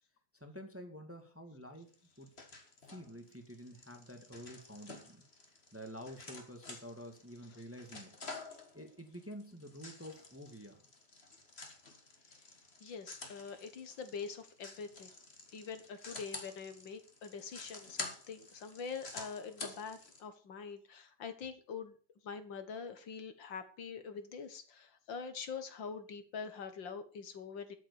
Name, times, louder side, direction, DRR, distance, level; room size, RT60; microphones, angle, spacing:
voice 1, 0.3-2.3 2.8-5.2 5.7-8.2 8.7-10.8, equal, 5° right, 5 dB, 1.4 m, -49 dB
Road Bike Rear Derailleur Rear Mech Shift Click, 1.9-20.2, left 3 dB, 25° left, 1.9 m, -50 dB
voice 2, 12.8-15.1 15.5-22.0 22.2-27.7, left 5 dB, 50° left, 10 dB, 1.7 m, -44 dB
13.0 x 7.5 x 7.0 m, 0.40 s
omnidirectional pair, 3.4 m